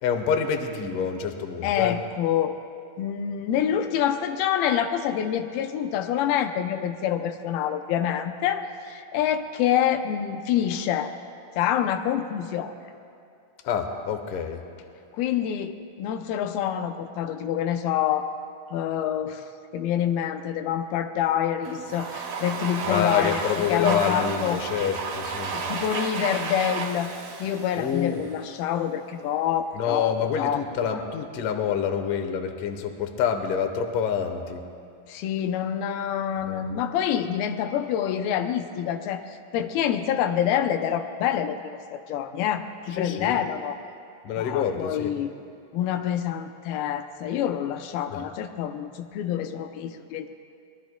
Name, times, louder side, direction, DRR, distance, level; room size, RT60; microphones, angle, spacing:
voice 1, 0.0-2.0 13.6-14.6 22.9-25.8 27.8-28.2 29.8-34.6 36.5-36.7 42.9-43.4 44.2-45.1, left 7 dB, 70° left, 6 dB, 2.4 m, -27 dB
voice 2, 1.6-2.6 3.0-11.1 11.6-12.7 15.1-18.4 18.7-19.4 19.7-23.4 23.7-24.6 25.5-30.6 35.1-41.6 41.9-43.8 44.4-45.3 45.7-50.3, left 9 dB, 90° left, 7 dB, 2.5 m, -27 dB
Domestic sounds home sounds, 21.7-28.5, right 5 dB, 70° right, 3.0 m, -32 dB
24.5 x 21.0 x 2.2 m, 2.4 s
omnidirectional pair, 4.2 m